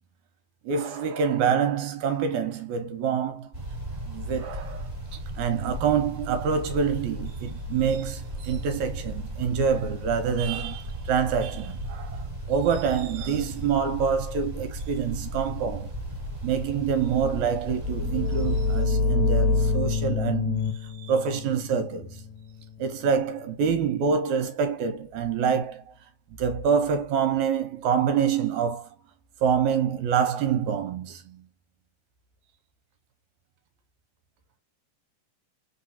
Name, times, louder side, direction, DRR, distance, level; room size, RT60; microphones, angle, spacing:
voice 1, 0.6-3.5 4.1-4.9 5.4-16.0 16.4-22.2 22.8-25.9 26.4-28.9 29.4-31.5, right 7 dB, 80° right, 2.3 m, -26 dB
sound 1, 3.5-18.8, right 1 dB, 15° right, 2.0 m, -36 dB
sound 2, 17.7-23.3, left 3 dB, 80° left, 2.4 m, -27 dB
4.5 x 3.8 x 2.7 m
omnidirectional pair, 3.4 m